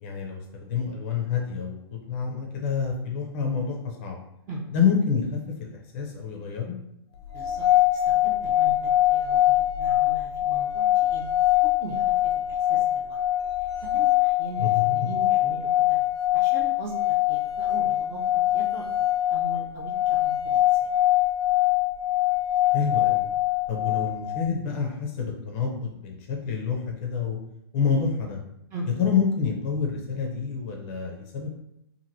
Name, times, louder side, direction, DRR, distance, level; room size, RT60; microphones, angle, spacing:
voice 1, 0.0-4.2 4.7-6.8 14.6-15.1 22.7-23.2 23.7-27.4 27.7-28.4 28.9-31.5, left 6 dB, 30° left, 1 dB, 0.5 m, -28 dB
sound 1, 7.3-24.5, left 14 dB, 85° left, 0.4 m, -23 dB
voice 2, 7.3-11.3 11.6-13.2 13.6-16.0 16.3-18.8 19.3-20.9 28.7-28.9, right 1 dB, 20° right, -3 dB, 0.5 m, -40 dB
2.9 x 2.5 x 2.6 m, 0.80 s
hypercardioid pair, 145°, 13 cm